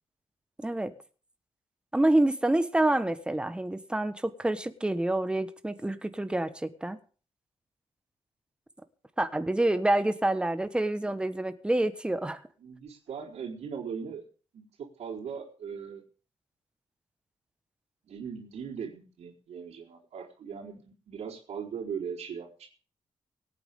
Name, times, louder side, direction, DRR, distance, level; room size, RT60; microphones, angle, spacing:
voice 1, 0.6-0.9 1.9-7.0 9.2-12.4, right 1 dB, 10° right, 1.3 m, -27 dB
voice 2, 12.6-14.2 14.5-14.7 15.0-16.0 18.1-22.7, right 6 dB, 80° right, 4.3 m, -39 dB
24.5 x 9.4 x 3.7 m
wide cardioid pair, 150°, 11 cm